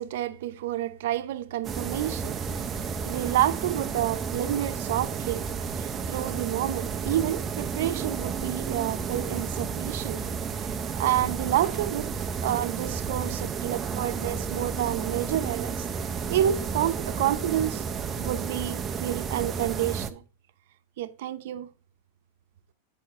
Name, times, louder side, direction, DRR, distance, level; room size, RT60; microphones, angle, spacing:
voice 1, 0.0-10.2 10.7-12.1 12.4-15.9 16.3-17.8 18.2-20.2 21.0-21.7, right 12 dB, 65° right, 0.7 m, -29 dB
sound 1, 1.6-20.1, right 6 dB, 15° right, 0.5 m, -32 dB
8.4 x 5.7 x 3.6 m
supercardioid pair, 165°, 0 cm